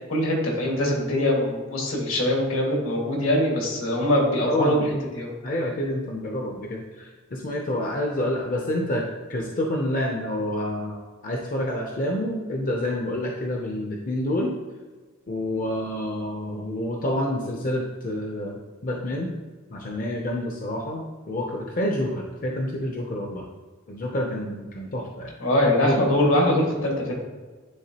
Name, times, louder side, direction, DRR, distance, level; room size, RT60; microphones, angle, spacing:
voice 1, 0.1-4.8 5.1-5.3 25.4-27.1, left 1 dB, 80° left, -1 dB, 1.7 m, -22 dB
voice 2, 4.5-5.0 5.4-9.0 9.3-14.5 15.3-19.3 19.7-23.5 23.9-25.3 25.6-26.1, left 1 dB, 40° left, 0 dB, 0.6 m, -28 dB
9.6 x 3.5 x 2.8 m, 1.4 s
head